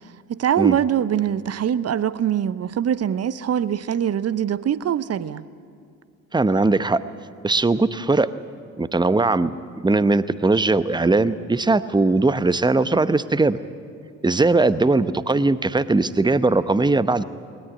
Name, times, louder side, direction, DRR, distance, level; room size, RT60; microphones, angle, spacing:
voice 1, 0.3-5.4, right 9 dB, 40° right, 0.8 m, -23 dB
voice 2, 6.3-7.0 7.4-8.3 8.8-9.5 9.8-13.6 14.2-17.2, right 3 dB, 10° right, 0.9 m, -19 dB
20.5 x 18.5 x 9.7 m
figure-of-eight pair, 45°, 39 cm